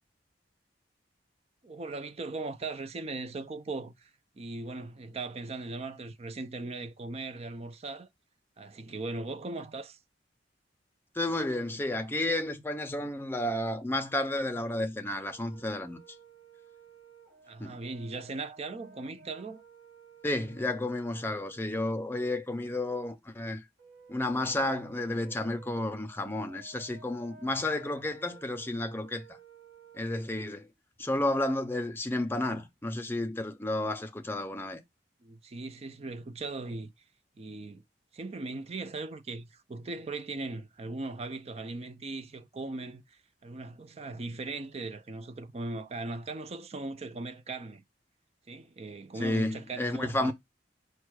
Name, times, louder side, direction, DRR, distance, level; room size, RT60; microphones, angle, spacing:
voice 1, 1.6-4.1 4.4-8.1 8.6-10.0 17.5-19.6 35.2-36.9 37.4-37.8 38.1-47.8 48.5-50.3, right 3 dB, 35° right, 0.5 m, -39 dB
voice 2, 11.2-16.0 17.6-17.8 20.2-23.6 24.1-29.4 29.9-30.7 31.0-34.8 49.2-50.3, left 1 dB, 15° left, 0.6 m, -32 dB
Brass instrument, 15.2-21.7 23.8-30.4, right 5 dB, 60° right, 2.3 m, -55 dB
4.6 x 2.3 x 4.6 m
head